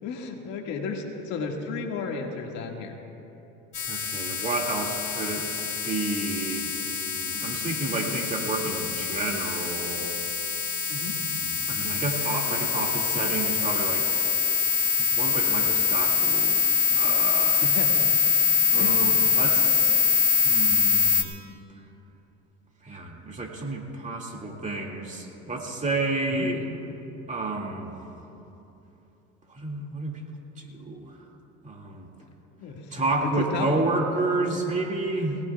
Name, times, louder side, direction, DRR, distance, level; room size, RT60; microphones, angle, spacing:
voice 1, 0.0-3.0 10.9-11.2 17.6-17.9 18.7-19.2 26.3-26.5 32.6-33.7 35.3-35.4, left 5 dB, 70° left, 1 dB, 2.0 m, -33 dB
sound 1, 3.7-21.2, left 5 dB, 40° left, 2.4 m, -24 dB
voice 2, 3.9-5.5 5.8-6.7 7.2-10.1 11.4-14.1 15.0-16.6 16.9-17.6 18.7-19.9 20.5-21.3 22.8-26.6 27.3-27.9 29.5-30.2 30.6-31.1 31.6-32.1 32.9-35.4, right 2 dB, 25° right, 0 dB, 2.3 m, -30 dB
22.5 x 18.5 x 2.4 m, 2.9 s
supercardioid pair, 105°, 30 cm